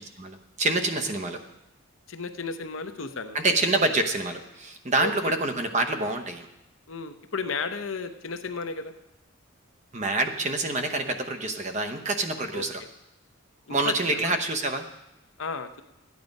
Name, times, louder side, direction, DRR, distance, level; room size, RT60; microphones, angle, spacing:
voice 1, 0.2-1.4 3.3-6.5 9.9-12.8 13.7-14.8, right 2 dB, 35° right, 7 dB, 0.9 m, -27 dB
voice 2, 2.1-3.4 5.0-5.4 6.9-8.9 12.5-12.7 13.7-14.3 15.4-15.8, left 4 dB, 70° left, 8 dB, 0.9 m, -34 dB
13.5 x 9.5 x 5.3 m, 0.94 s
head